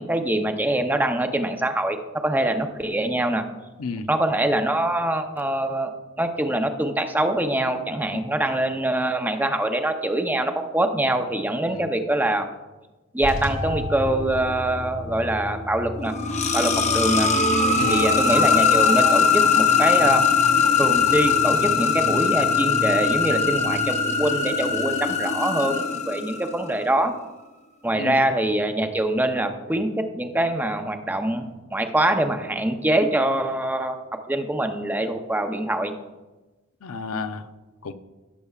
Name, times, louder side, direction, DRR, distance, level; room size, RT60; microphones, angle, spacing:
voice 1, 0.0-2.0 2.2-3.4 4.1-5.9 6.2-12.5 13.1-16.1 16.5-17.3 17.9-20.3 20.8-27.1 27.8-34.0 34.3-35.9, right 1 dB, 10° right, 6 dB, 0.6 m, -24 dB
sound 1, 13.2-25.2, equal, 85° right, 2.3 m, -34 dB
sound 2, 16.0-26.7, left 5 dB, 35° left, 0.7 m, -21 dB
voice 2, 17.7-18.0 27.9-28.3 36.8-37.5 37.8-37.9, left 4 dB, 90° left, 9 dB, 0.6 m, -31 dB
17.5 x 6.8 x 2.4 m, 1.1 s
head